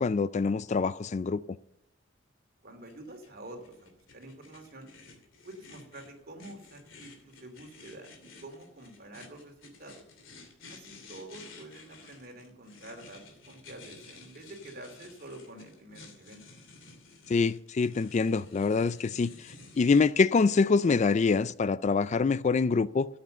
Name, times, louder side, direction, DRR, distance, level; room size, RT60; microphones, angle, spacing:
voice 1, 0.0-1.4 17.3-23.1, left 4 dB, 35° left, 0.3 m, -25 dB
voice 2, 2.6-4.9 5.4-10.0 10.7-16.4, right 1 dB, 50° right, 2.8 m, -48 dB
sound 1, 2.9-20.1, left 3 dB, 75° left, 2.9 m, -53 dB
13.5 x 8.6 x 6.7 m
head